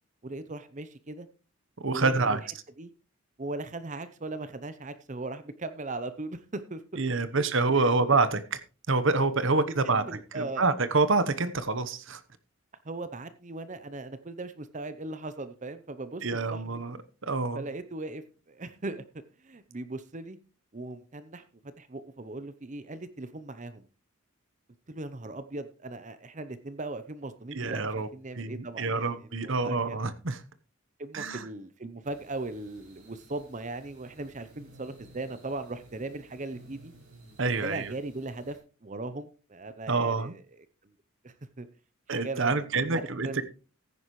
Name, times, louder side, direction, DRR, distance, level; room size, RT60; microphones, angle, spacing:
voice 1, 0.2-1.3 1.9-2.4 2.8-2.9 3.4-6.8 7.2-7.3 7.7-8.0 9.6-10.6 12.8-16.8 17.5-19.0 19.4-20.4 20.7-21.4 21.8-23.9 24.9-30.0 31.0-36.9 37.6-40.9 41.2-41.7 42.1-43.4, right 2 dB, 35° right, 12 dB, 0.7 m, -39 dB
voice 2, 1.8-2.4 7.0-8.6 8.9-10.0 10.3-12.2 16.2-17.0 17.2-17.6 27.5-28.1 28.4-30.4 31.1-31.4 37.4-37.9 39.9-40.3 42.1-43.4, right 3 dB, 55° right, 13 dB, 1.0 m, -27 dB
sound 1, 32.0-38.6, right 2 dB, 75° right, 6.6 m, -56 dB
15.0 x 10.0 x 3.1 m, 0.35 s
head